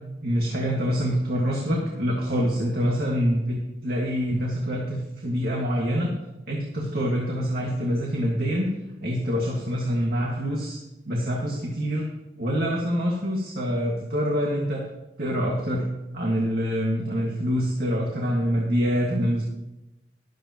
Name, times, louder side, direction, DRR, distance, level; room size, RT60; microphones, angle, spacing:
voice 1, 0.2-6.1 6.5-8.7 9.0-10.8 11.1-12.0 12.4-14.8 15.2-15.9 16.1-19.4, equal, 60° right, -2 dB, 2.0 m, -25 dB
13.0 x 12.5 x 3.0 m, 0.97 s
head